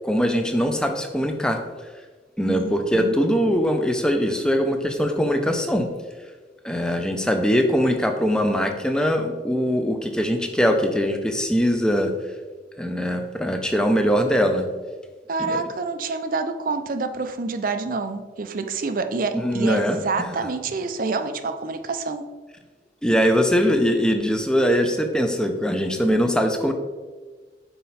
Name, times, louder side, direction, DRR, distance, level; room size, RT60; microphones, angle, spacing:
voice 1, 0.0-1.6 2.4-5.9 6.6-12.1 12.8-14.7 15.4-15.6 19.3-20.2 23.0-26.7, equal, 5° left, 5 dB, 0.5 m, -22 dB
voice 2, 2.5-3.2 15.3-22.2, right 4 dB, 50° right, 8 dB, 0.5 m, -27 dB
5.7 x 4.2 x 4.1 m, 1.4 s
head